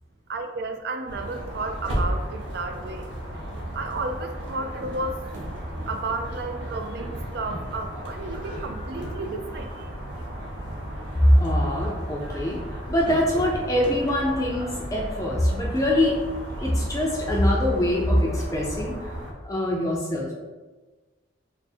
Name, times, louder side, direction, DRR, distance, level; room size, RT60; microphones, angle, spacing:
voice 1, 0.3-3.1 3.7-5.2 5.9-9.9, right 2 dB, 60° right, 5 dB, 0.4 m, -32 dB
sound 1, 1.1-19.3, right 1 dB, 80° right, 0.8 m, -34 dB
voice 2, 8.5-8.9 11.2-12.6 12.9-16.2 16.6-19.1 19.4-20.3, equal, 20° left, -3 dB, 0.4 m, -23 dB
3.3 x 2.1 x 4.2 m, 1.2 s
head